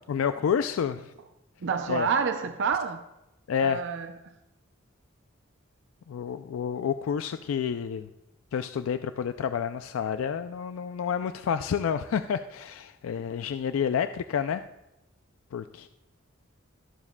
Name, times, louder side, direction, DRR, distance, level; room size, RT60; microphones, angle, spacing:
voice 1, 0.1-1.1 1.9-2.1 3.5-3.8 6.1-8.1 8.5-14.6 15.5-15.9, left 7 dB, 80° left, 0.3 m, -29 dB
voice 2, 1.6-3.0 3.6-4.1, right 6 dB, 60° right, 0.5 m, -28 dB
21.5 x 7.3 x 2.2 m
head